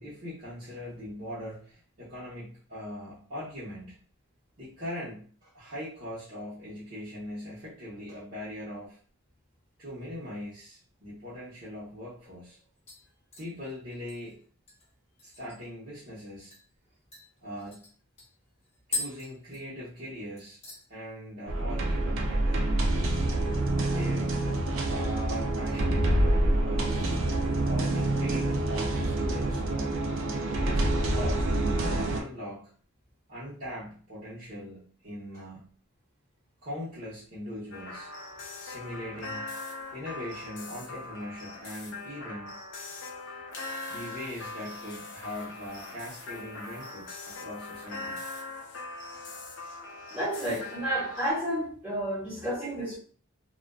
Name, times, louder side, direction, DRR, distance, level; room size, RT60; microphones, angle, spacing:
voice 1, 0.0-4.0 4.6-9.0 9.8-12.6 13.4-14.4 15.2-16.5 17.4-17.9 18.9-20.6 20.9-23.2 23.8-24.3 24.9-27.1 27.6-30.1 30.5-32.7 33.3-35.6 36.6-38.1 38.6-39.5 39.9-42.6 43.9-48.2 49.1-49.3, left 1 dB, 40° right, 0.9 m, -41 dB
sound 1, 12.9-15.7 16.0-16.1 16.5-16.7 17.1-20.1 20.4-20.9 21.2-21.6 21.9-22.0 24.1-24.7 25.0-25.8 26.2-26.4 27.0-27.9 28.3-28.4, left 3 dB, 30° left, 0.8 m, -42 dB
sound 2, 21.5-32.2, right 1 dB, 60° right, 0.4 m, -27 dB
sound 3, 37.7-51.3, left 3 dB, 55° left, 0.5 m, -41 dB
voice 2, 50.1-53.0, right 1 dB, 10° right, 0.8 m, -31 dB
2.4 x 2.3 x 2.2 m
head